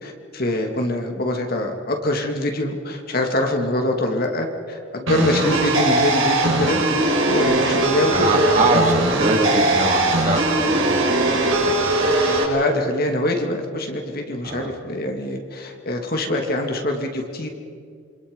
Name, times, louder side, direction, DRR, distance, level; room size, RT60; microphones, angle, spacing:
voice 1, 0.0-8.9 12.2-17.5, left 1 dB, 50° left, 3 dB, 2.5 m, -24 dB
sound 1, 5.1-12.4, right 2 dB, 85° right, 5.3 m, -19 dB
voice 2, 7.4-7.8 8.1-11.8 12.3-12.5 14.4-14.7, right 2 dB, 35° right, 0 dB, 3.6 m, -24 dB
27.5 x 25.5 x 5.4 m, 2.2 s
head